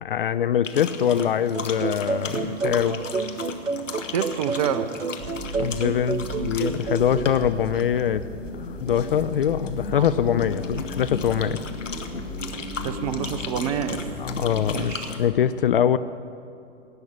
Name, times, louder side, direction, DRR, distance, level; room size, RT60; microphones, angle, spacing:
voice 1, 0.0-3.0 5.6-8.2 8.8-11.6 14.2-16.0, left 9 dB, 45° left, 13 dB, 0.4 m, -23 dB
sound 1, 0.6-15.3, left 4 dB, 75° left, 1.3 m, -36 dB
sound 2, 1.5-7.4, right 4 dB, 90° right, 0.7 m, -30 dB
voice 2, 4.1-4.9 9.9-10.1 12.8-14.0 14.7-15.1, right 9 dB, 30° right, 11 dB, 0.6 m, -27 dB
sound 3, 5.2-14.9, equal, 10° right, 1.5 m, -37 dB
17.5 x 6.4 x 8.8 m, 2.6 s
figure-of-eight pair, 115°, 38 cm